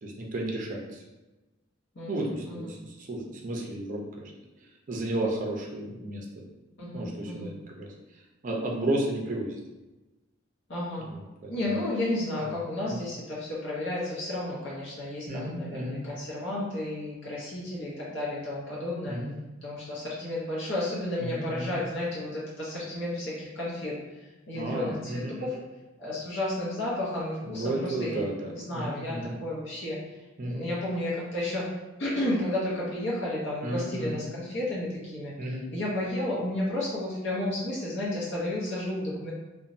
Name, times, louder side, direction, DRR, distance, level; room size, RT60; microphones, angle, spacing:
voice 1, 0.0-1.0 2.1-4.3 4.9-6.2 6.9-7.9 8.4-9.6 11.0-11.8 12.4-12.6 12.9-13.0 15.3-16.0 19.0-19.3 21.2-21.8 24.5-25.6 27.5-29.4 30.4-30.7 33.6-34.2 35.4-35.6, right 1 dB, 40° right, -1 dB, 0.5 m, -33 dB
voice 2, 2.0-2.8 6.8-7.5 10.7-11.1 11.5-19.2 19.6-24.0 24.5-25.5 26.0-30.0 30.4-31.7 32.0-35.3 35.7-39.3, left 1 dB, 60° left, -6 dB, 0.7 m, -32 dB
2.9 x 2.1 x 2.5 m, 1.1 s
head